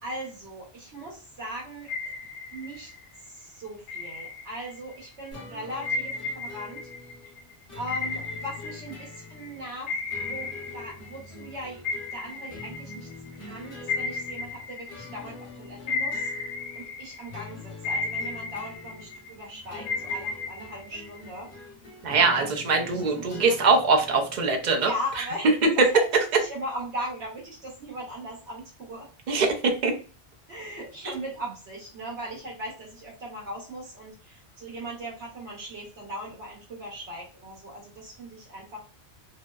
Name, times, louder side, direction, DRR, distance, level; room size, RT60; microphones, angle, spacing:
voice 1, 0.0-1.9 2.5-2.9 3.2-6.9 7.7-11.8 12.1-13.1 13.4-16.3 16.7-21.5 22.4-22.5 22.7-23.6 24.8-25.5 25.8-26.0 26.3-29.1 30.5-38.9, equal, 80° right, -4 dB, 1.2 m, -38 dB
sound 1, 1.9-3.2 3.9-5.0 5.8-9.4 9.9-11.5 11.8-15.4 15.9-17.4 17.8-19.4 19.9-21.6, left 4 dB, 85° left, 0.9 m, -34 dB
sound 2, 5.3-24.5, left 3 dB, 55° left, 1.0 m, -45 dB
voice 2, 22.0-24.9 29.3-29.9, right 4 dB, 55° right, 3 dB, 0.6 m, -22 dB
2.7 x 2.0 x 2.2 m, 0.37 s
omnidirectional pair, 1.1 m